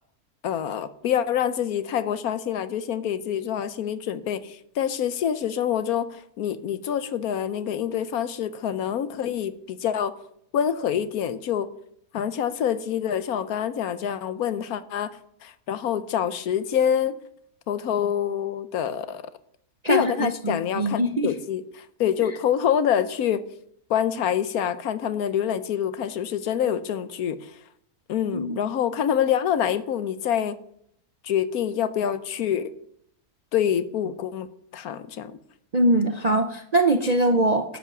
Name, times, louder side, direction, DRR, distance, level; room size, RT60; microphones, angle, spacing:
voice 1, 0.4-10.1 10.5-11.7 12.1-17.2 17.7-19.2 19.9-23.4 23.9-27.5 28.1-30.6 31.2-32.7 33.5-34.5 34.7-35.4, left 9 dB, 70° left, 13 dB, 1.2 m, -26 dB
voice 2, 19.8-21.3 28.3-28.6 35.7-37.8, right 1 dB, 45° right, 6 dB, 0.5 m, -22 dB
12.0 x 8.3 x 6.0 m, 0.70 s
omnidirectional pair, 1.6 m